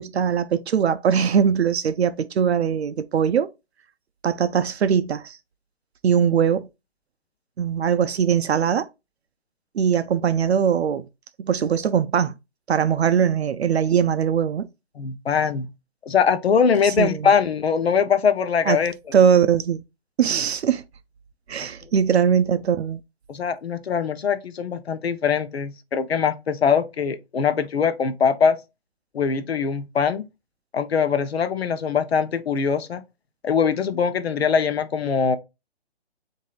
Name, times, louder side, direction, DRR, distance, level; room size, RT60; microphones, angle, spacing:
voice 1, 0.0-3.5 4.2-5.4 6.0-6.7 7.6-8.9 9.7-11.1 11.4-12.3 12.7-14.7 16.8-17.3 18.7-18.8 19.1-19.8 20.2-20.8 21.5-23.0, right 8 dB, 75° right, 0.5 m, -21 dB
voice 2, 15.0-15.7 16.1-18.9 23.3-28.6 29.1-30.2 30.7-33.0 33.4-35.4, left 6 dB, 70° left, 0.7 m, -22 dB
7.4 x 2.7 x 2.3 m
hypercardioid pair, 170°, 33 cm